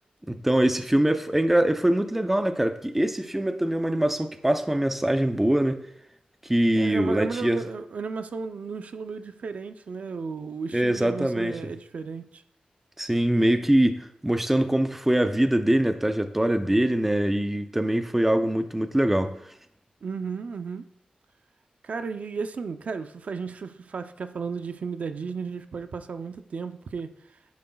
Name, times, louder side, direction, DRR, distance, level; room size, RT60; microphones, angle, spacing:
voice 1, 0.3-5.8 6.4-7.6 10.7-11.6 13.0-19.3, right 1 dB, 10° right, 0.5 m, -23 dB
voice 2, 6.8-12.4 20.0-20.9 21.8-27.1, right 5 dB, 65° right, 0.5 m, -34 dB
10.0 x 9.6 x 2.3 m
wide cardioid pair, 140°, 3 cm